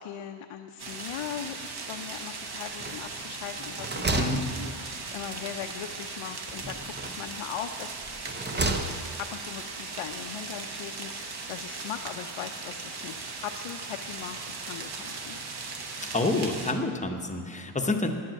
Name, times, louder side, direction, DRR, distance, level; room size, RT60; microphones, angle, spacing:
voice 1, 0.0-8.1 8.5-8.9 9.3-15.4, left 9 dB, 85° left, 4 dB, 0.7 m, -40 dB
sound 1, 0.8-16.7, right 4 dB, 50° right, 1.1 m, -38 dB
sound 2, 2.8-3.3 3.6-5.2 6.5-7.3 8.0-9.3, right 2 dB, 20° right, 0.6 m, -32 dB
voice 2, 16.1-18.1, left 2 dB, 15° left, 4 dB, 0.8 m, -28 dB
10.0 x 7.6 x 7.5 m, 2.3 s
wide cardioid pair, 145°, 50 cm